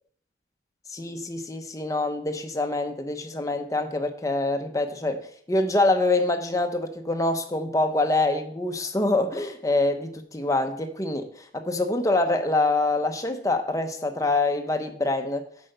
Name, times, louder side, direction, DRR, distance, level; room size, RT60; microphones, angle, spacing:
voice 1, 0.9-5.2 5.5-15.4, left 2 dB, 20° left, 6 dB, 1.0 m, -25 dB
8.3 x 5.3 x 6.7 m, 0.63 s
head